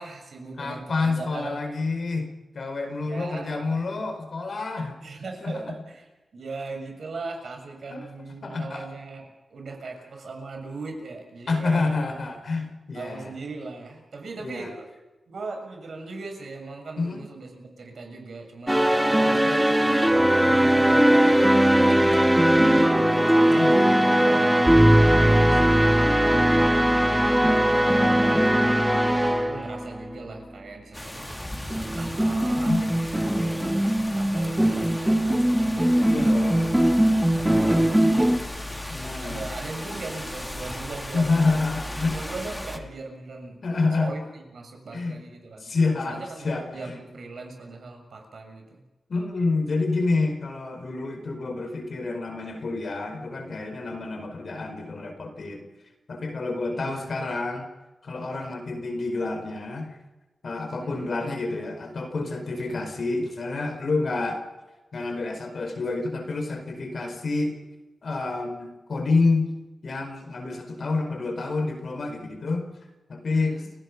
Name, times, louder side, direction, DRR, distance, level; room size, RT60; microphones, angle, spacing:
voice 1, 0.0-1.7 3.0-3.8 5.0-12.0 12.9-14.9 15.3-19.5 19.8-22.8 23.3-28.7 29.3-31.4 32.0-36.6 37.3-38.6 39.2-41.5 42.0-43.6 44.0-45.7 46.0-48.8 56.7-57.1 60.8-61.2 73.4-73.7, right 3 dB, 70° right, 3 dB, 6.9 m, -39 dB
voice 2, 0.6-4.9 5.4-5.6 7.9-8.0 8.4-8.8 11.5-13.3 14.4-14.7 17.0-17.2 19.4-19.6 23.5-23.8 28.3-28.6 32.5-32.8 36.1-36.7 37.6-37.9 38.9-39.5 41.1-42.2 43.6-44.1 44.9-45.1 45.6-47.0 49.1-55.6 56.1-57.7 58.0-60.0 60.4-64.4 64.9-67.5 68.0-69.5 69.8-72.7 73.1-73.6, left 3 dB, 60° left, 5 dB, 4.6 m, -28 dB
sound 1, 18.7-30.3 31.7-38.4, right 1 dB, 10° right, 1.9 m, -20 dB
sound 2, 30.9-42.8, left 1 dB, 10° left, 2.2 m, -36 dB
30.0 x 17.5 x 6.1 m, 1.1 s
wide cardioid pair, 115°, 0 cm